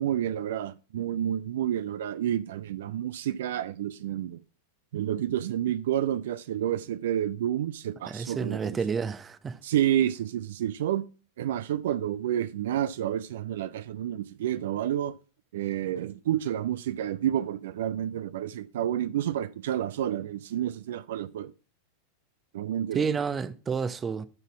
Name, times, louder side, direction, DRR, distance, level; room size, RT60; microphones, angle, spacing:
voice 1, 0.0-4.4 4.9-8.8 9.6-11.1 11.4-15.1 15.5-21.5 22.5-23.1, right 11 dB, 55° right, 0.3 m, -29 dB
voice 2, 8.1-9.6 22.9-24.3, right 5 dB, 20° right, 0.6 m, -30 dB
12.0 x 4.1 x 5.7 m
figure-of-eight pair, 90°, 0 cm